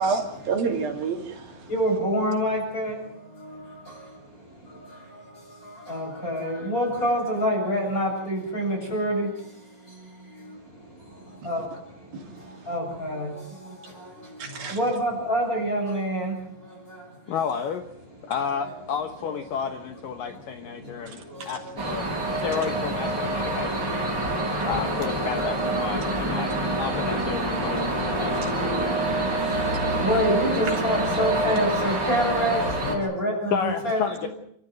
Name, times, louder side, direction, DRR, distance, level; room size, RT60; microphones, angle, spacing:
voice 1, 0.0-1.7 11.4-11.5 12.1-12.5 14.4-14.8 21.1-21.5, right 5 dB, 65° right, 4.5 m, -29 dB
voice 2, 1.2-4.0 4.5-17.4 18.2-18.8 19.2-19.7 20.1-21.8 22.1-25.1 25.8-34.3, equal, 20° left, 8.1 m, -30 dB
voice 3, 17.3-17.9 18.2-24.0 24.6-26.5 26.8-29.0 32.8-33.0 33.5-34.3, left 7 dB, 65° left, 2.6 m, -31 dB
sound 1, 21.8-33.0, right 1 dB, 25° right, 5.2 m, -26 dB
29.0 x 13.5 x 9.4 m
omnidirectional pair, 4.7 m